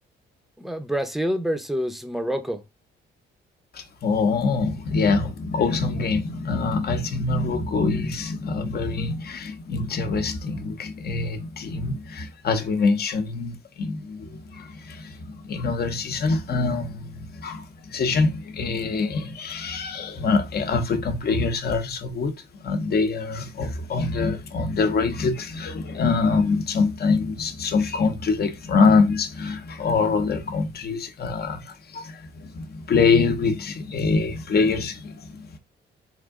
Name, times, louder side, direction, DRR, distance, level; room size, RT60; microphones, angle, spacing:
voice 1, 0.6-2.6, equal, ahead, 0.6 m, -27 dB
voice 2, 3.7-35.6, left 4 dB, 55° left, 0.9 m, -24 dB
3.7 x 2.5 x 3.6 m
cardioid pair, 90°, 20 cm